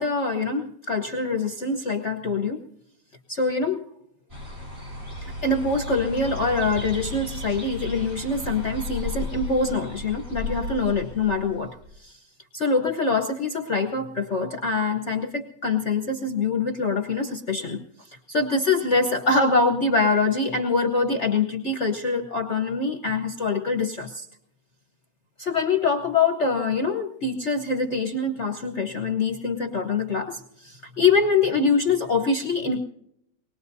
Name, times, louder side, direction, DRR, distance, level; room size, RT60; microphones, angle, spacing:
voice 1, 0.0-2.6 3.3-3.8 5.2-12.2 12.5-24.3 25.4-32.8, left 4 dB, 45° left, 3 dB, 1.2 m, -24 dB
sound 1, 4.3-11.9, left 2 dB, 45° right, 6.1 m, -34 dB
24.5 x 20.5 x 2.7 m, 0.75 s
omnidirectional pair, 2.1 m